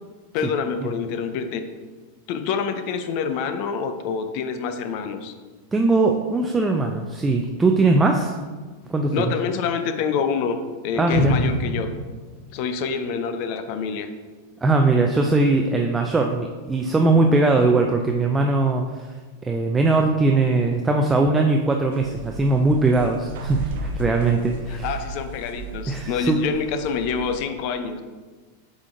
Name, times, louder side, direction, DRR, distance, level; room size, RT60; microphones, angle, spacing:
voice 1, 0.3-1.6 2.3-5.3 9.1-11.9 12.5-14.1 24.7-28.0, left 6 dB, 45° left, 8 dB, 0.5 m, -27 dB
voice 2, 5.7-8.3 8.9-9.2 11.0-11.4 14.6-19.1 19.4-24.9 25.9-26.4, right 3 dB, 10° right, 2 dB, 0.4 m, -20 dB
sound 1, 11.1-13.3 13.6-13.7, left 1 dB, 65° left, 1.1 m, -27 dB
sound 2, 21.9-27.5, right 4 dB, 55° right, 0.7 m, -35 dB
8.1 x 5.0 x 2.5 m, 1.4 s
figure-of-eight pair, 90°, 0 cm